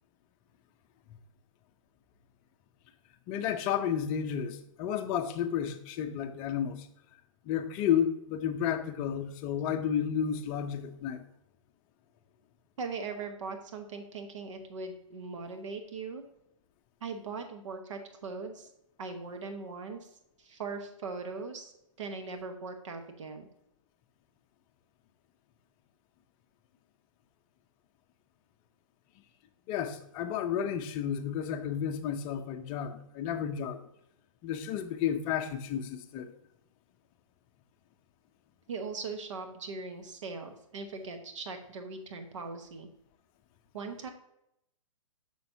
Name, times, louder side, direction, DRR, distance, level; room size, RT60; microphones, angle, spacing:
voice 1, 3.3-6.9 7.4-11.2 29.7-33.8 34.4-36.3, left 8 dB, 30° left, 7 dB, 0.6 m, -32 dB
voice 2, 12.8-16.2 17.0-18.7 19.0-20.1 20.4-21.7 22.0-23.5 38.7-42.9 43.7-44.1, right 4 dB, 65° right, 5 dB, 1.1 m, -40 dB
6.8 x 6.5 x 2.7 m, 0.78 s
hypercardioid pair, 130°, 17 cm